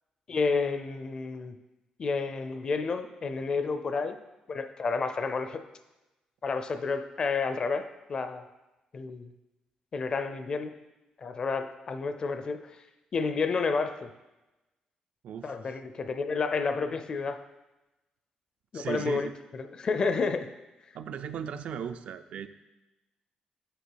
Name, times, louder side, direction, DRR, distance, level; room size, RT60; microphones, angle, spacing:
voice 1, 0.3-1.6 2.0-4.2 4.5-5.6 6.4-8.4 8.9-9.3 9.9-10.8 11.2-12.8 13.1-14.1 15.4-17.4 18.7-19.3 19.5-20.5, left 4 dB, 35° left, 9 dB, 0.4 m, -30 dB
voice 2, 15.2-15.8 18.7-19.3 20.9-22.5, right 8 dB, 65° right, 10 dB, 0.4 m, -37 dB
6.7 x 5.8 x 4.6 m, 1.0 s
cardioid pair, 165°, 2 cm